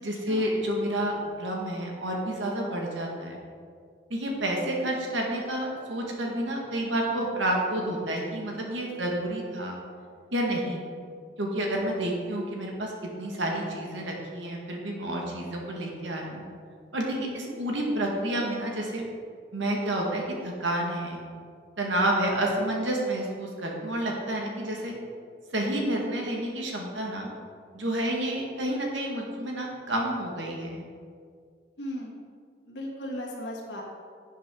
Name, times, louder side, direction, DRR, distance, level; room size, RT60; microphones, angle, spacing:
voice 1, 0.0-3.4 4.1-9.8 10.3-10.8 11.4-12.9 13.2-16.4 16.9-19.0 19.5-21.2 21.8-24.9 25.5-27.3 27.7-30.9, right 1 dB, 90° right, -1 dB, 1.9 m, -29 dB
voice 2, 17.2-17.5 31.8-32.2 32.7-33.8, equal, 75° left, -2 dB, 2.0 m, -36 dB
11.5 x 7.5 x 3.9 m, 2.2 s
head